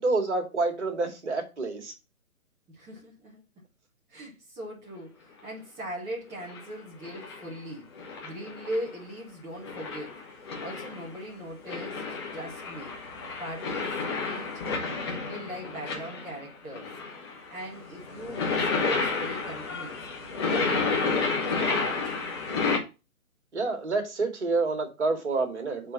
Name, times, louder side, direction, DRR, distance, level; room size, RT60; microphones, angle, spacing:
voice 1, 0.0-1.9 23.5-25.9, right 3 dB, 50° right, 2.3 m, -28 dB
voice 2, 2.7-3.4 4.1-7.9 8.2-10.2 10.6-13.0 13.4-14.6 15.0-16.9 17.5-20.1 20.5-22.1, equal, 10° right, 1.1 m, -39 dB
sound 1, 6.3-6.6 7.0-7.6 8.0-9.0 9.6-11.2 11.6-16.5 16.7-22.8, left 4 dB, 20° left, 1.1 m, -31 dB
6.7 x 4.2 x 6.1 m
figure-of-eight pair, 135°, 43 cm